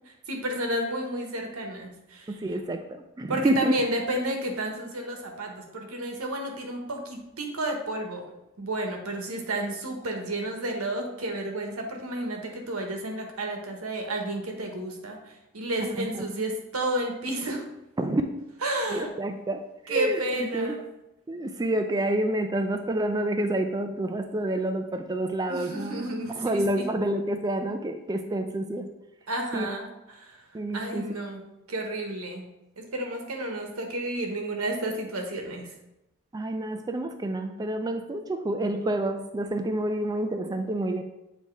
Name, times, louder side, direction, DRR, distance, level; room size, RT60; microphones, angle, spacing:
voice 1, 0.3-2.4 3.3-8.3 8.6-15.2 15.5-17.6 18.6-19.1 19.9-20.8 25.5-26.8 29.3-30.4 30.7-31.4 31.7-32.5 32.8-35.7, right 1 dB, 85° right, 3 dB, 1.2 m, -31 dB
voice 2, 2.3-3.7 15.8-16.3 18.0-18.2 18.9-19.6 19.9-20.8 21.3-26.1 26.4-28.9 29.5-29.7 30.5-31.2 36.3-41.0, right 1 dB, 20° right, 6 dB, 0.3 m, -28 dB
8.1 x 2.8 x 4.6 m, 0.92 s
head